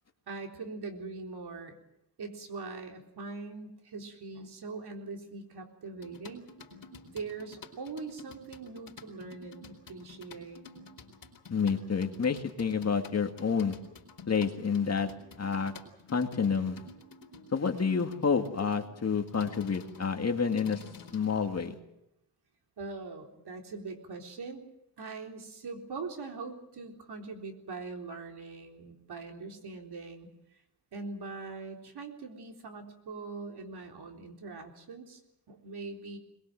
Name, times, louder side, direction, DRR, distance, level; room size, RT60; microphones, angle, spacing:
voice 1, 0.3-1.8 2.2-6.4 7.1-10.6 22.8-24.6 25.0-30.3 30.9-35.2 35.5-36.2, right 4 dB, 65° right, 3 dB, 4.0 m, -42 dB
sound 1, 6.0-21.3, left 3 dB, 55° left, 4.2 m, -51 dB
voice 2, 11.5-13.8 14.3-15.1 15.4-15.7 16.1-16.8 17.5-20.8 21.1-21.7, left 6 dB, 40° left, 5 dB, 2.2 m, -29 dB
22.5 x 21.0 x 7.7 m, 0.85 s
wide cardioid pair, 115°, 41 cm